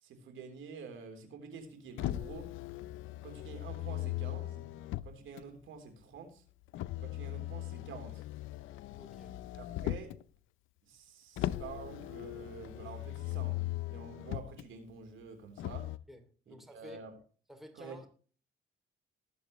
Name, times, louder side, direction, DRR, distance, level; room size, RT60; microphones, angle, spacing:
voice 1, 0.0-2.5 3.2-4.7 5.0-6.4 7.0-8.2 9.5-10.1 10.8-13.6 13.9-15.9 16.5-17.1 17.7-18.1, right 5 dB, 80° right, 5 dB, 3.5 m, -48 dB
Motor vehicle (road), 2.0-5.4 6.7-10.2 11.4-14.6 15.6-16.0, left 15 dB, 85° left, 0.6 m, -39 dB
voice 2, 9.0-9.4 16.1-17.0 17.5-18.1, equal, ahead, 6 dB, 2.6 m, -52 dB
20.0 x 7.6 x 3.1 m, 0.40 s
cardioid pair, 90°, 20 cm